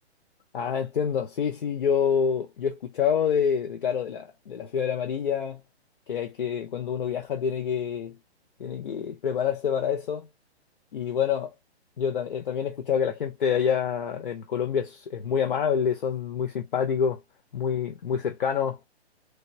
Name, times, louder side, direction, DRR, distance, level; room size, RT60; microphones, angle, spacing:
voice 1, 0.5-5.6 6.1-8.2 8.6-10.3 10.9-11.5 12.0-17.2 17.5-18.8, left 7 dB, 50° left, 0.6 m, -27 dB
3.3 x 2.2 x 4.1 m
hypercardioid pair, 175°, 33 cm